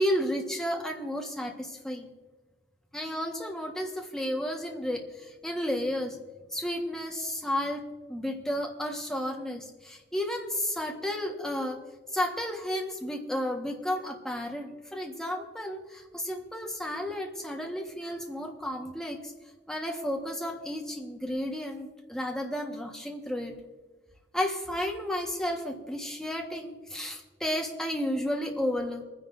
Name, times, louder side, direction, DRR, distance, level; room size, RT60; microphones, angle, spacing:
voice 1, 0.0-2.1 2.9-6.2 6.5-7.8 8.1-11.8 12.1-19.3 19.7-23.6 24.3-29.0, equal, 5° left, 1 dB, 1.3 m, -32 dB
27.0 x 10.0 x 2.6 m, 1.3 s
head